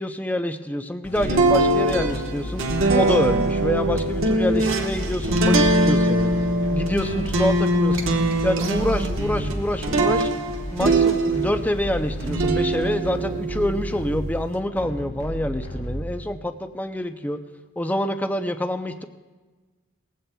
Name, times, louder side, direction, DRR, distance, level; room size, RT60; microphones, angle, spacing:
voice 1, 0.0-2.6 2.9-6.3 6.7-8.1 8.4-10.3 10.7-17.4 17.8-19.1, left 1 dB, 10° left, 8 dB, 0.4 m, -26 dB
sound 1, 1.0-16.5, equal, 85° left, 3.6 m, -33 dB
sound 2, 1.2-11.7 12.2-14.5, right 2 dB, 85° right, 1.2 m, -22 dB
19.5 x 16.0 x 2.2 m, 1.3 s
head